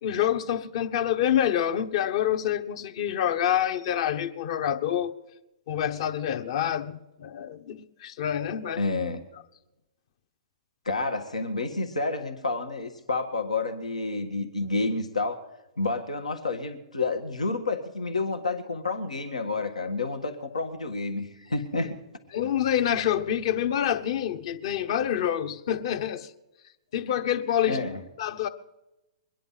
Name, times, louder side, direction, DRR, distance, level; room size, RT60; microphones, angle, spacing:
voice 1, 0.0-5.1 5.7-8.8 22.3-26.3 26.9-27.8 28.2-28.5, left 10 dB, 55° left, 1.2 m, -27 dB
voice 2, 8.8-9.2 10.8-15.4 15.8-22.0 27.7-28.0, left 3 dB, 90° left, 1.7 m, -29 dB
22.5 x 10.5 x 5.7 m
hypercardioid pair, 120°, 4 cm